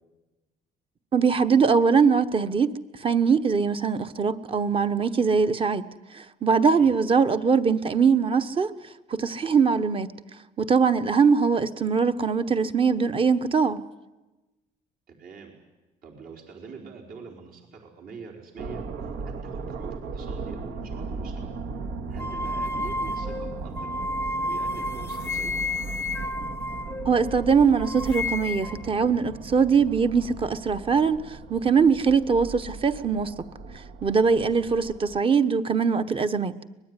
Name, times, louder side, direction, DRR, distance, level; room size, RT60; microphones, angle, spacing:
voice 1, 1.1-2.7 3.0-5.8 6.1-8.7 9.1-10.1 10.6-13.8 27.0-33.4 33.7-36.6, right 5 dB, 30° right, 1.2 m, -22 dB
voice 2, 15.1-15.5 16.0-21.5 22.1-24.0 24.5-25.5 34.3-34.6, right 5 dB, 60° right, 5.0 m, -44 dB
sound 1, 18.6-35.2, right 4 dB, 75° right, 2.1 m, -37 dB
sound 2, 22.2-27.5 27.8-28.9, left 2 dB, 15° left, 0.8 m, -31 dB
24.5 x 20.5 x 9.9 m
cardioid pair, 110°, 17 cm